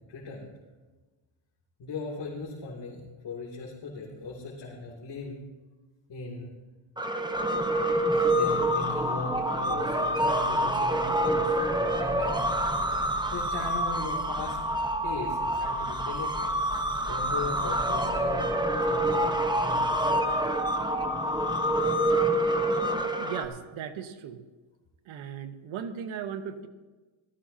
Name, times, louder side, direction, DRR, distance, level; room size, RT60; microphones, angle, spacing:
voice 1, 0.1-0.5 1.8-5.4 6.1-6.5 8.1-12.6 13.3-14.6 15.0-16.6 17.1-20.2, left 3 dB, 60° left, -5 dB, 3.0 m, -38 dB
sound 1, 7.0-23.4, right 1 dB, 10° right, 1.1 m, -27 dB
voice 2, 23.2-24.4 25.1-26.7, right 8 dB, 85° right, 9 dB, 1.2 m, -37 dB
18.0 x 14.0 x 2.8 m, 1.3 s
cardioid pair, 90°, 47 cm